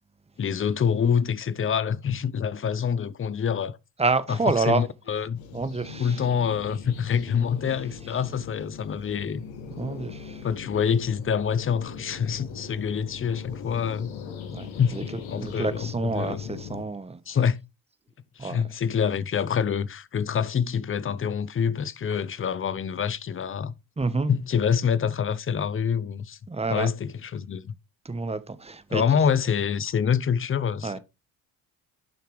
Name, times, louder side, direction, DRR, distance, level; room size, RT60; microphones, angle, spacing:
voice 1, 0.4-3.8 4.3-4.4 4.7-5.4 6.0-9.4 10.4-14.1 14.8-16.4 17.3-17.6 18.4-23.7 24.3-26.4 26.7-27.8 28.9-31.0, left 7 dB, 25° left, 0.7 m, -26 dB
voice 2, 4.0-4.8 5.5-6.2 9.8-10.5 14.5-15.0 15.3-17.2 18.4-18.7 24.0-24.3 26.5-26.9 28.0-29.0 30.8-31.0, right 3 dB, 15° right, 1.0 m, -28 dB
sound 1, 5.3-16.8, left 6 dB, 70° left, 1.6 m, -40 dB
10.5 x 5.7 x 3.1 m
hypercardioid pair, 60°, 48 cm